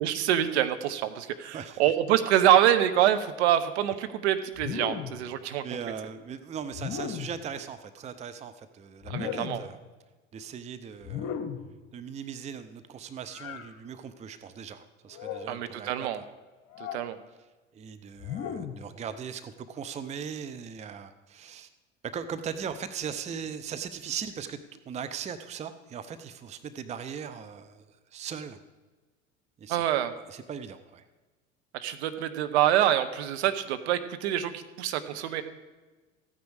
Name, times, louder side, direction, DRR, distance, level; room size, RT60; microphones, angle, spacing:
voice 1, 0.0-5.6 9.1-9.6 15.5-16.2 16.9-17.2 29.7-30.1 31.7-35.4, right 11 dB, 60° right, 9 dB, 1.0 m, -25 dB
sound 1, 4.6-5.3 6.7-7.4 9.0-9.8 11.0-11.7 13.3-13.7 15.1-15.6 16.7-17.1 18.2-18.9, left 8 dB, 45° left, 1.3 m, -36 dB
voice 2, 5.6-9.8 10.3-11.4 11.9-16.2 17.7-21.7 22.0-28.6 29.6-29.8 30.3-31.1, right 7 dB, 20° right, 11 dB, 0.6 m, -39 dB
14.5 x 9.3 x 4.9 m, 1.3 s
figure-of-eight pair, 70°, 38 cm